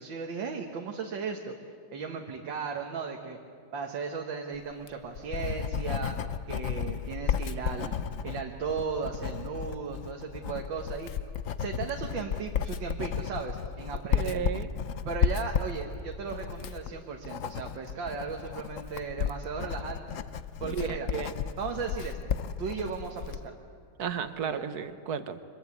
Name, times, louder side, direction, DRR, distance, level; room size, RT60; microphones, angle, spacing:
voice 1, 0.0-1.5 1.9-3.4 3.7-6.2 6.5-7.9 8.2-11.1 11.6-14.5 15.1-20.2 20.6-21.1 21.6-22.2 22.6-23.6 24.4-24.6, right 5 dB, 80° right, 2 dB, 2.1 m, -36 dB
Writing, 4.7-23.5, left 7 dB, 60° left, 0.9 m, -33 dB
voice 2, 14.1-14.7 20.6-21.3 24.0-25.4, right 7 dB, 60° right, 11 dB, 1.5 m, -33 dB
25.0 x 21.5 x 8.4 m, 2.3 s
omnidirectional pair, 2.0 m